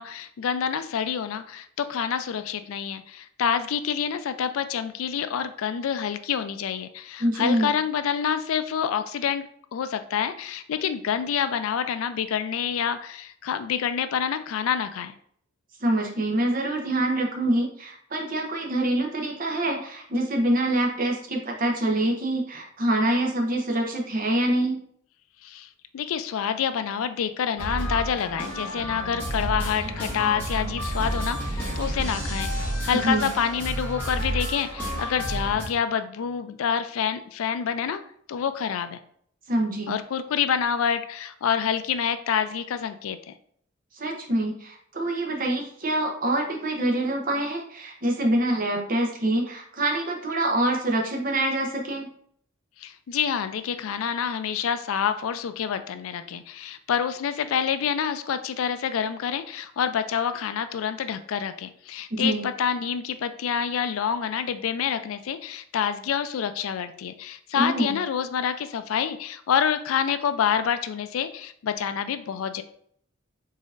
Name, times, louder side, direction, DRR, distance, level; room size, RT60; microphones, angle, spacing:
voice 1, 0.0-9.4 9.7-15.1 25.4-38.0 38.3-39.0 39.9-43.3 52.8-72.6, left 7 dB, 80° left, 11 dB, 0.3 m, -27 dB
voice 2, 7.2-7.7 15.8-24.8 32.9-33.3 39.5-39.9 43.9-52.1 62.1-62.5 67.5-67.9, right 1 dB, 40° right, 1 dB, 0.7 m, -25 dB
sound 1, 27.6-35.7, equal, 10° left, 1.5 m, -30 dB
4.0 x 3.9 x 2.4 m, 0.63 s
head